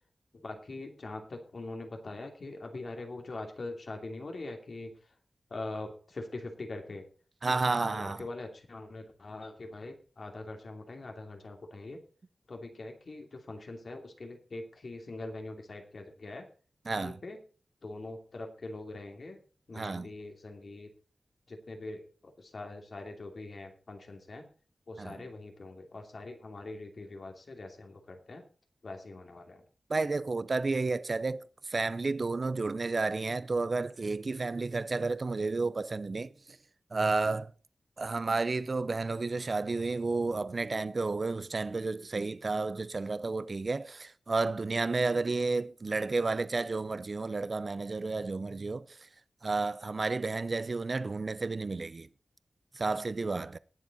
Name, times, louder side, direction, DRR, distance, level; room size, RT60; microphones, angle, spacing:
voice 1, 0.4-4.9 5.5-7.0 7.4-7.6 7.9-12.0 12.5-16.4 16.9-17.4 17.8-19.4 19.7-20.9 21.5-24.4 24.9-28.4 28.8-29.6, left 2 dB, 60° left, 2.6 m, -43 dB
voice 2, 7.4-8.2 16.9-17.2 19.7-20.1 25.0-25.2 29.9-36.3 36.9-37.5 38.0-48.9 49.4-52.1 52.8-53.6, right 3 dB, 45° right, 0.5 m, -31 dB
19.5 x 7.3 x 4.1 m
wide cardioid pair, 115°, 0 cm